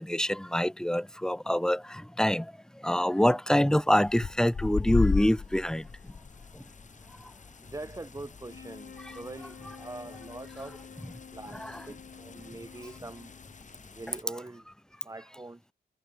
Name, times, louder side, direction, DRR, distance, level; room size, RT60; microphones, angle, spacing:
voice 1, 0.0-2.5 2.8-5.8 11.5-11.8, equal, 5° left, 1.0 m, -26 dB
sound 1, 4.0-14.2, left 5 dB, 45° left, 2.6 m, -37 dB
voice 2, 7.6-10.8 11.3-13.3 13.9-14.7 15.0-15.6, right 2 dB, 20° right, 2.2 m, -43 dB
sound 2, 8.4-13.9, left 6 dB, 60° left, 5.8 m, -50 dB
cardioid pair, 100°, 18 cm